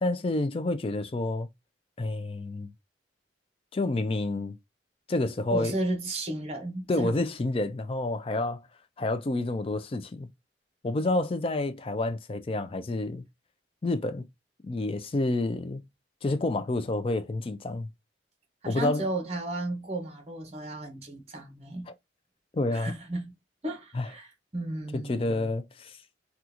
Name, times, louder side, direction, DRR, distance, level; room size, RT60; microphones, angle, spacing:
voice 1, 0.0-1.5 2.0-2.7 3.7-4.6 5.1-5.7 6.9-8.6 9.0-10.3 10.8-13.3 13.8-14.3 14.6-15.8 16.2-17.9 18.7-19.0 22.5-22.9 23.9-24.1 24.9-26.0, left 2 dB, 30° left, 0.4 m, -29 dB
voice 2, 5.5-7.2 18.6-21.9 22.7-23.3 23.6-25.5, right 1 dB, 35° right, 0.9 m, -34 dB
3.6 x 2.3 x 2.8 m
head